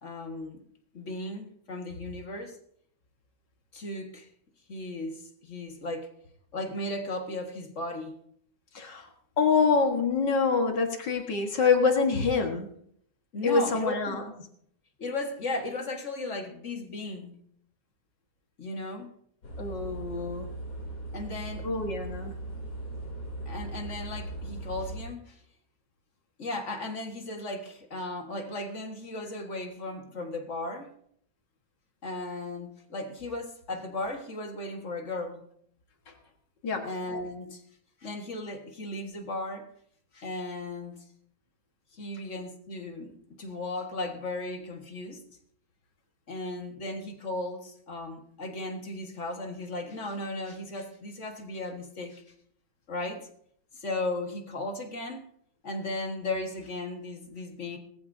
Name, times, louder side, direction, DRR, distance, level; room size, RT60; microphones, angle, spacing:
voice 1, 0.0-0.6 0.9-2.6 3.7-4.3 4.7-6.1 6.5-8.2 13.3-14.2 15.0-17.4 18.6-19.1 21.1-21.7 23.5-25.4 26.4-30.9 32.0-35.4 36.8-37.6 38.0-39.7 40.1-41.0 41.9-45.4 46.3-52.2 52.9-53.3 53.7-55.3 55.6-57.8, left 2 dB, 45° left, 1.9 m, -36 dB
voice 2, 8.7-9.1 9.4-12.7 13.4-14.3 19.6-20.5 21.6-22.3 36.1-36.2 36.6-36.9, left 4 dB, 85° left, 2.3 m, -26 dB
sound 1, 19.4-25.1, right 2 dB, 65° left, 3.7 m, -38 dB
19.0 x 14.5 x 2.7 m
omnidirectional pair, 1.9 m